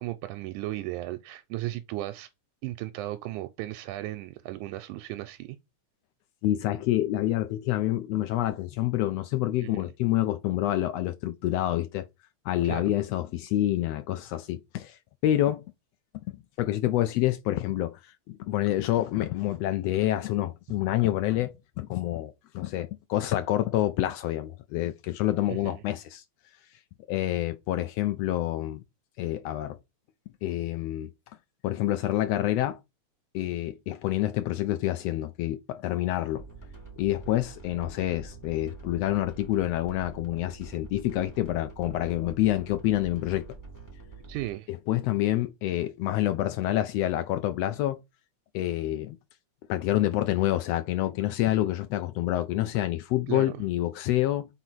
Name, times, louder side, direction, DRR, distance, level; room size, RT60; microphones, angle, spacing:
voice 1, 0.0-2.3 2.6-5.6 9.6-9.8 12.6-12.9 25.5-25.8 44.3-44.7 53.3-53.5, right 16 dB, 90° right, 2.1 m, -35 dB
voice 2, 6.4-12.1 12.4-15.6 16.6-26.2 27.1-28.8 29.2-29.8 30.4-31.1 31.6-32.8 33.3-36.4 37.0-43.4 44.7-48.0 48.5-49.2 49.7-54.5, left 14 dB, 85° left, 1.4 m, -27 dB
sound 1, 36.4-44.5, right 4 dB, 5° left, 2.6 m, -46 dB
4.9 x 4.1 x 5.9 m
omnidirectional pair, 3.5 m